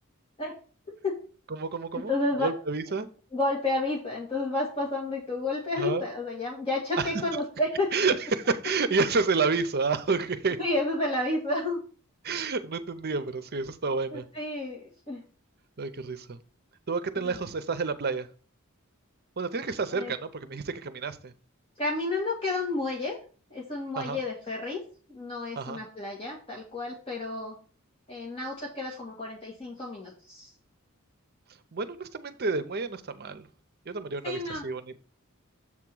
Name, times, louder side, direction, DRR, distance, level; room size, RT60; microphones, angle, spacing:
voice 1, 0.9-1.2 2.1-2.5 3.3-7.9 10.6-11.8 14.1-15.2 17.2-17.4 19.9-20.1 21.8-23.2 23.5-24.8 25.1-27.5 28.1-30.5 34.2-34.6, left 2 dB, 25° left, -3 dB, 1.7 m, -31 dB
voice 2, 1.5-2.1 2.4-3.1 5.8-6.0 7.0-7.1 7.9-10.6 12.2-14.3 15.8-16.4 16.9-18.3 19.4-21.3 24.0-24.2 25.6-25.8 31.7-33.5 33.9-34.9, right 4 dB, 50° right, 11 dB, 0.7 m, -29 dB
7.4 x 3.6 x 6.0 m, 0.40 s
head